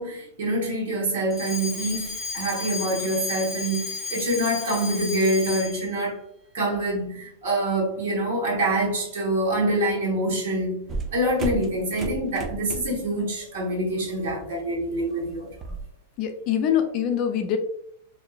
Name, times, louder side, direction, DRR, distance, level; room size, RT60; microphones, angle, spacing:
voice 1, 0.0-6.2 6.5-10.9 11.1-15.5, right 1 dB, 75° right, 1.0 m, -26 dB
Alarm, 1.3-5.9, left 5 dB, 5° right, 0.7 m, -33 dB
sound 1, 10.9-13.1 13.5-13.8 14.2-15.9, right 3 dB, 25° right, 0.3 m, -34 dB
voice 2, 16.2-17.6, left 9 dB, 45° left, 0.4 m, -24 dB
2.5 x 2.1 x 2.3 m
hypercardioid pair, 130°, 0 cm